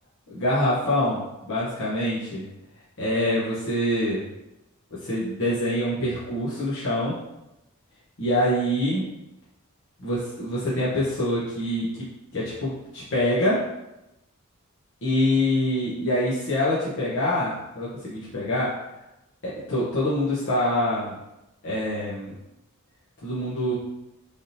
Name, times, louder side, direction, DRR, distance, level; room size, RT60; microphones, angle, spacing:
voice 1, 0.3-2.5 3.0-4.2 5.0-7.1 8.2-9.1 10.0-11.9 12.3-13.6 15.0-18.7 19.4-21.1 21.6-22.3 23.2-23.7, left 1 dB, 60° left, -9 dB, 0.8 m, -25 dB
3.4 x 2.7 x 2.6 m, 0.93 s
head